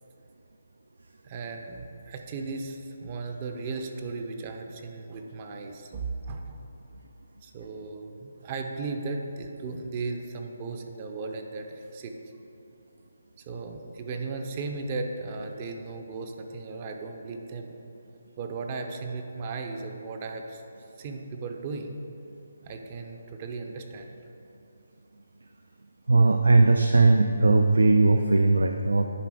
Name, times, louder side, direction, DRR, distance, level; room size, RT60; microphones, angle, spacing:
voice 1, 1.2-6.6 7.4-12.1 13.4-17.8 18.4-20.6 21.0-22.0 22.6-24.1, right 3 dB, 30° right, 4 dB, 0.5 m, -36 dB
voice 2, 26.1-29.1, right 3 dB, 85° right, 6 dB, 0.4 m, -19 dB
9.9 x 3.3 x 4.8 m, 2.8 s
hypercardioid pair, 165°, 0 cm